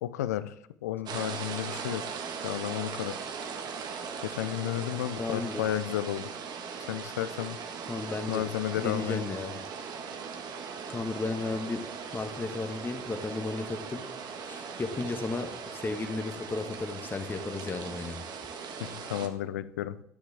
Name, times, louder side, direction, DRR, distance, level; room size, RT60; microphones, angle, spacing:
voice 1, 0.0-0.5 0.8-2.0 2.4-3.2 4.2-6.3 6.9-7.6 8.3-9.3 18.8-20.0, left 12 dB, 85° left, 15 dB, 0.5 m, -32 dB
sound 1, 1.0-19.3, right 6 dB, 55° right, 1.5 m, -39 dB
voice 2, 5.2-5.6 7.9-8.4 8.8-9.6 10.9-11.8 12.1-18.2, left 3 dB, 25° left, 5 dB, 1.4 m, -34 dB
10.5 x 10.0 x 3.5 m, 0.74 s
hypercardioid pair, 70°, 9 cm